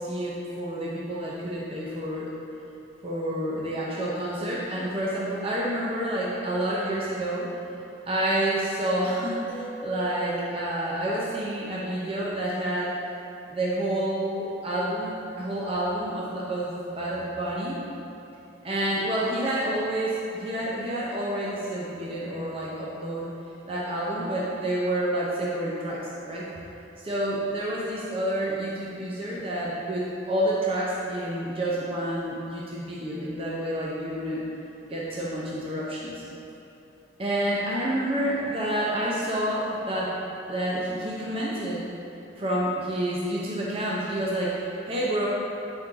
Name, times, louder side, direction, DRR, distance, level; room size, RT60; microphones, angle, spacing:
voice 1, 0.0-2.3 3.0-7.5 8.1-13.0 13.5-17.8 18.6-23.3 23.7-26.5 27.0-34.4 34.9-36.2 37.2-40.1 40.5-41.9 42.4-45.3, right 1 dB, 30° right, -6 dB, 0.7 m, -29 dB
Mallet percussion, 9.5-13.2, right 5 dB, 70° right, 0.6 m, -45 dB
7.8 x 4.4 x 3.7 m, 2.9 s
head